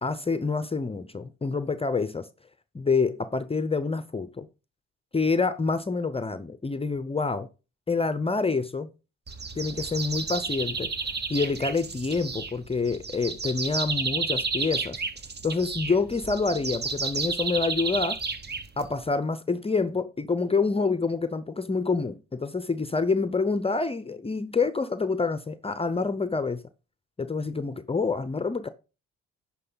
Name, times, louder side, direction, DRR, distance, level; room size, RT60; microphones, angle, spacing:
voice 1, 0.0-2.3 2.7-4.5 5.1-7.5 7.9-8.9 9.6-10.9 11.3-15.0 15.4-18.2 18.8-26.6 27.2-28.7, left 4 dB, 20° left, 0.7 m, -27 dB
sound 1, 9.3-19.1, right 4 dB, 35° right, 1.2 m, -32 dB
9.9 x 6.1 x 4.0 m
cardioid pair, 90°, 30 cm